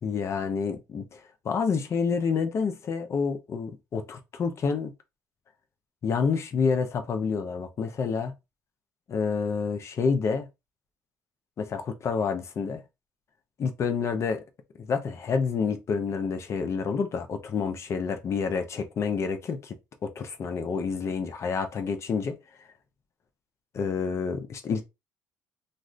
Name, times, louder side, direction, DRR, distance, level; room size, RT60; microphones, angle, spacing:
voice 1, 0.0-4.9 6.0-8.3 9.1-10.5 11.6-12.8 13.6-14.4 14.8-19.8 20.0-22.4 23.7-24.9, left 5 dB, 45° left, 0.6 m, -28 dB
2.5 x 2.4 x 3.2 m
cardioid pair, 95°, 7 cm